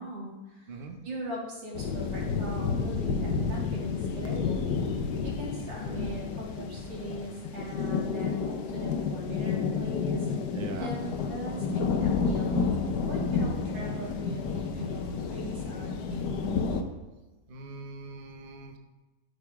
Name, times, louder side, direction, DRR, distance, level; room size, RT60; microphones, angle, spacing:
voice 1, 0.0-10.3 10.8-16.3, equal, 90° right, -4 dB, 3.3 m, -40 dB
voice 2, 0.7-1.0 10.5-10.9 17.5-18.8, right 3 dB, 40° right, 4 dB, 0.9 m, -41 dB
sound 1, 1.7-16.8, left 5 dB, 70° left, 1.4 m, -30 dB
12.5 x 5.9 x 4.9 m, 1.1 s
omnidirectional pair, 2.0 m